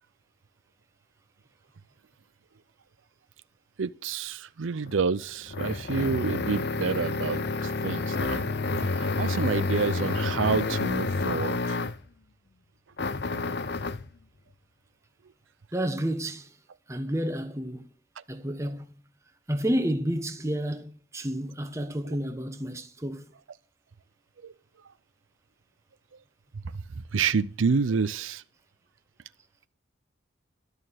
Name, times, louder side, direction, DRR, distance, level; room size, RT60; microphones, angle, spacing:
voice 1, 3.8-8.5 8.7-11.8 13.3-13.4 18.2-18.3 22.0-22.2 24.4-24.5 26.5-28.4, right 5 dB, 80° right, 0.5 m, -29 dB
sound 1, 4.9-12.1 13.0-14.1, left 3 dB, 55° left, 0.7 m, -29 dB
voice 2, 15.7-16.5 16.9-17.9 18.3-18.9 19.5-23.2, equal, 15° right, 1.1 m, -30 dB
13.0 x 6.5 x 8.9 m
head